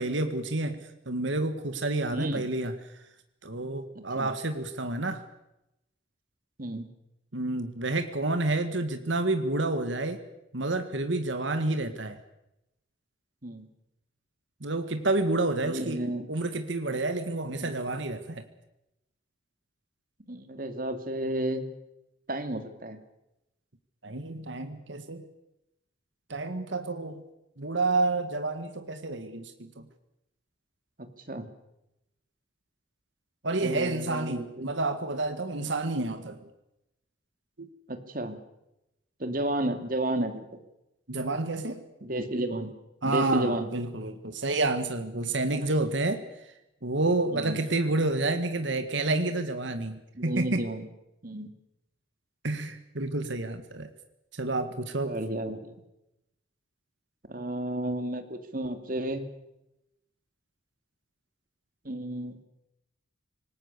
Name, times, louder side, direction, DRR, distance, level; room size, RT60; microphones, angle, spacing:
voice 1, 0.0-2.7 3.4-5.2 7.3-10.2 10.5-12.2 14.6-16.0 16.3-18.4 24.0-25.2 26.3-27.2 27.6-29.7 33.4-36.4 37.6-37.7 41.1-41.8 43.0-46.2 46.8-50.6 52.4-53.9 54.4-55.2, right 2 dB, 75° right, 8 dB, 1.9 m, -29 dB
voice 2, 2.1-2.4 3.9-4.3 6.6-6.9 13.4-13.7 15.6-16.3 17.6-17.7 20.3-21.6 22.3-23.0 31.0-31.5 33.6-34.7 37.9-38.4 39.2-40.5 42.0-42.7 43.0-43.7 45.5-45.7 47.3-47.6 50.1-50.9 51.2-51.5 55.0-55.8 57.3-59.2 61.8-62.4, right 1 dB, 45° right, 8 dB, 2.6 m, -32 dB
26.5 x 19.5 x 6.8 m, 0.87 s
head